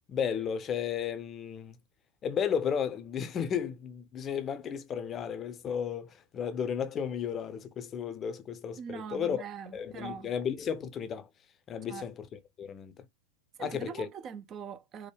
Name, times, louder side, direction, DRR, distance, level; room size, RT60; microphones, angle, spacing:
voice 1, 0.1-1.8 2.2-9.4 9.7-11.3 11.7-13.1 13.6-14.1, left 7 dB, 25° left, 0.6 m, -34 dB
voice 2, 8.8-10.3 11.9-12.1 13.6-15.1, right 7 dB, 30° right, 0.4 m, -42 dB
4.6 x 2.1 x 3.3 m
figure-of-eight pair, 90°, 0 cm